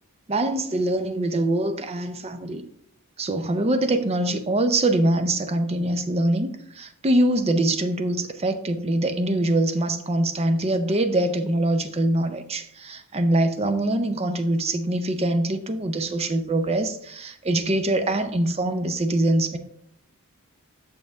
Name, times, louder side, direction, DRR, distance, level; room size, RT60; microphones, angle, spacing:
voice 1, 0.3-2.6 3.2-19.6, right 1 dB, 30° right, 8 dB, 0.5 m, -23 dB
6.5 x 6.4 x 3.4 m, 0.70 s
head